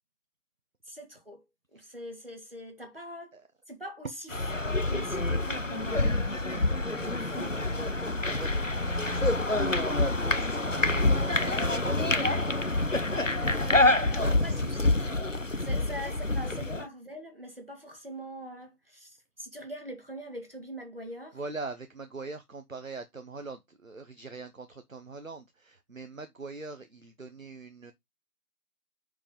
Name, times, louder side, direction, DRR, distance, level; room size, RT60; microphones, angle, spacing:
voice 1, 0.9-1.4 1.7-3.4 3.7-8.0 13.4-14.9 15.6-21.4, equal, 35° right, 1.8 m, -43 dB
sound 1, 4.3-16.8, left 2 dB, 55° left, 0.5 m, -27 dB
voice 2, 6.4-7.0 8.3-8.5 8.8-12.1 14.0-14.7 21.3-27.9, right 3 dB, 55° right, 0.8 m, -42 dB
5.6 x 4.8 x 5.2 m
figure-of-eight pair, 175°, 48 cm